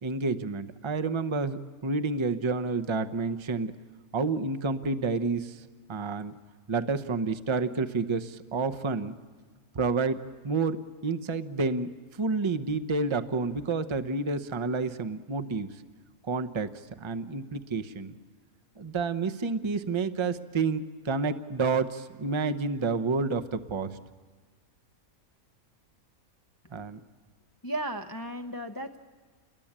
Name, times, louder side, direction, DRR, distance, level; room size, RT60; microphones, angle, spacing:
voice 1, 0.0-3.7 4.1-5.6 5.9-6.3 6.7-9.2 9.7-15.7 16.3-16.7 17.0-18.1 18.8-23.9 26.7-27.0, right 4 dB, 25° right, 11 dB, 0.7 m, -29 dB
voice 2, 27.6-29.0, right 1 dB, 20° left, 5 dB, 0.6 m, -34 dB
29.0 x 21.5 x 8.8 m, 1.4 s
omnidirectional pair, 1.5 m